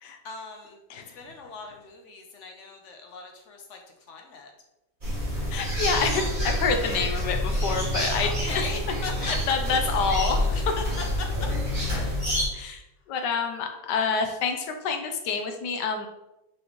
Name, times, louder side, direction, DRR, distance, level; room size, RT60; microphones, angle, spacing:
voice 1, 0.2-0.8 1.1-4.5 8.2-9.1 9.8-10.1 10.5-12.2, left 4 dB, 55° left, 3 dB, 0.9 m, -39 dB
sound 1, 5.0-12.5, left 1 dB, 25° right, 2.3 m, -27 dB
voice 2, 5.5-8.3 9.2-10.5 12.5-12.8 13.1-16.1, left 5 dB, 70° left, 5 dB, 1.4 m, -27 dB
6.3 x 4.9 x 3.1 m, 0.93 s
omnidirectional pair, 2.0 m